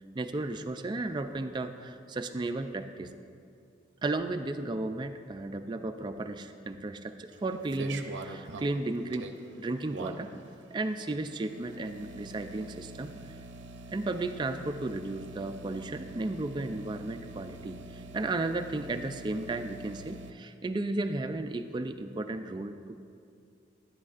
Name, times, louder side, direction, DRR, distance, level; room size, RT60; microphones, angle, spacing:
voice 1, 0.1-3.1 4.0-9.3 9.6-10.3 10.7-13.1 13.9-23.0, right 2 dB, 25° right, 8 dB, 0.3 m, -34 dB
sound 1, 7.3-20.3, right 2 dB, 85° right, 0.6 m, -45 dB
11.0 x 10.5 x 2.4 m, 2.5 s
head